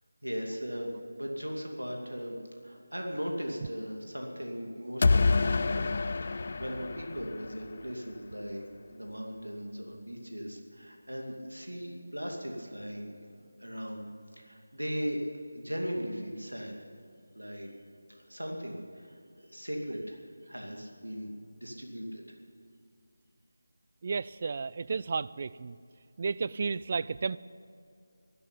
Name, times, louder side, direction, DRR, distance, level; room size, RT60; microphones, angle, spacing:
voice 1, 0.2-5.9 6.3-14.1 14.3-15.3 15.5-16.8 17.3-17.7 18.1-21.3 21.6-22.2, equal, 85° right, 1 dB, 2.5 m, -38 dB
sound 1, 5.0-7.9, left 3 dB, 45° left, 0.4 m, -27 dB
voice 2, 24.0-25.8 26.2-27.4, right 4 dB, 35° right, 18 dB, 0.3 m, -32 dB
12.0 x 11.5 x 8.9 m, 2.4 s
figure-of-eight pair, 160°, 0 cm